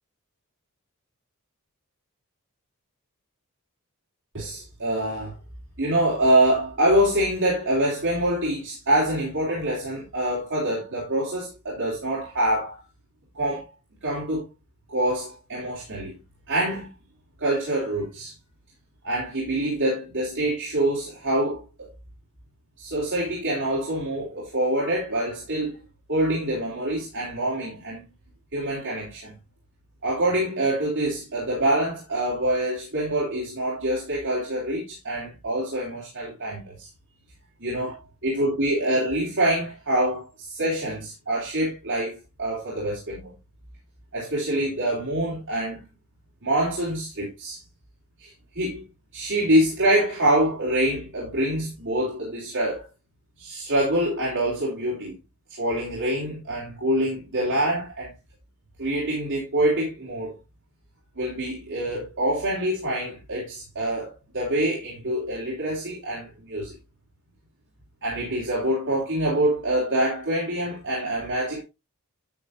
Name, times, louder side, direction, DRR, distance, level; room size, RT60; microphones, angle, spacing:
voice 1, 4.3-5.3 5.8-12.8 13.3-13.6 14.0-14.4 14.9-16.2 16.5-16.9 17.4-18.3 19.0-21.9 22.8-25.8 26.1-28.0 28.5-29.3 30.0-36.9 37.6-38.0 38.2-43.3 44.1-45.8 46.4-47.6 48.2-48.8 49.1-52.8 53.4-55.1 55.5-58.1 58.8-60.4 61.1-66.7 68.0-71.6, right 1 dB, 60° right, 3.3 m, -25 dB
9.7 x 7.9 x 2.6 m
head